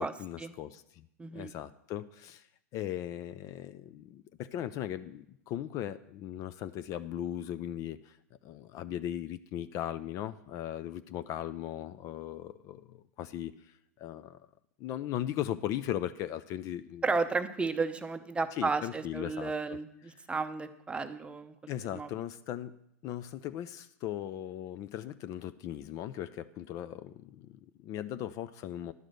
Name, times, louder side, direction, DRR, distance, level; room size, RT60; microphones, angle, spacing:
voice 1, 0.0-1.1 1.3-2.5 2.7-8.2 8.4-14.4 14.8-17.1 18.6-19.8 21.7-22.7 23.0-28.9, left 11 dB, 40° left, 13 dB, 0.5 m, -38 dB
voice 2, 1.2-1.5 17.0-21.5 21.9-22.1, right 4 dB, 15° right, 10 dB, 0.7 m, -33 dB
11.0 x 4.9 x 7.7 m, 0.74 s
hypercardioid pair, 100°, 8 cm